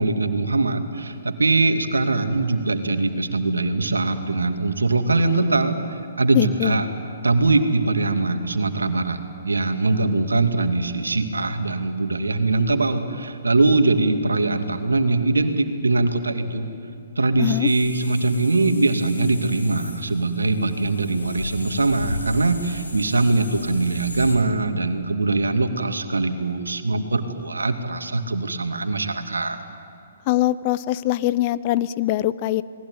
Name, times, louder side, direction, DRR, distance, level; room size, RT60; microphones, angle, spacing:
voice 1, 0.0-6.9 7.2-9.2 9.4-16.7 17.2-29.6, right 3 dB, 80° right, 7 dB, 2.4 m, -22 dB
voice 2, 6.3-6.8 17.4-17.7 30.3-32.6, left 15 dB, 35° left, 16 dB, 0.8 m, -22 dB
sound 1, 17.6-24.3, left 2 dB, 85° left, 4.5 m, -36 dB
29.5 x 20.0 x 9.7 m, 2.5 s
figure-of-eight pair, 125°, 0 cm